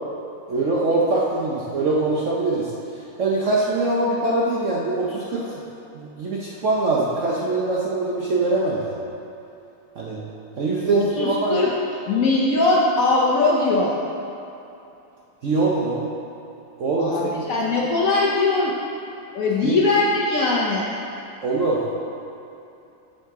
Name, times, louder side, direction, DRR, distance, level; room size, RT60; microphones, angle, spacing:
voice 1, 0.5-2.7 3.2-5.5 5.9-9.0 10.0-10.2 10.6-11.6 15.4-16.1 16.8-17.5 19.6-19.8 21.4-21.8, right 2 dB, 60° right, -5 dB, 0.8 m, -23 dB
voice 2, 10.9-11.7 12.1-14.0 17.0-18.7 19.3-20.9, left 3 dB, 65° left, -4 dB, 0.9 m, -20 dB
7.5 x 6.6 x 3.6 m, 2.8 s
omnidirectional pair, 2.1 m